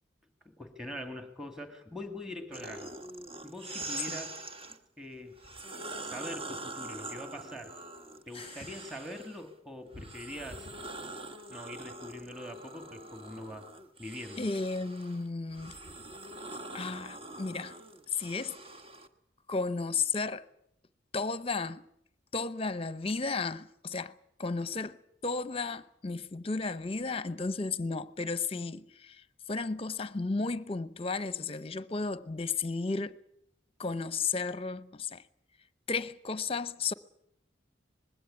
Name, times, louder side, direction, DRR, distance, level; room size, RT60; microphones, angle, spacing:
voice 1, 0.4-2.9 3.4-4.4 4.7-5.4 6.0-7.7 8.3-10.7 11.5-13.7 14.0-14.5, left 1 dB, 5° right, 2.3 m, -43 dB
sound 1, 2.5-4.8 5.4-9.5 9.9-19.1, right 2 dB, 30° right, 1.4 m, -44 dB
voice 2, 8.3-8.7 14.4-15.8 16.7-17.8 18.1-18.6 19.5-20.4 21.1-21.9 22.3-24.1 24.4-33.2 33.8-35.2 35.9-36.9, left 4 dB, 30° left, 0.8 m, -34 dB
21.0 x 16.5 x 9.7 m
head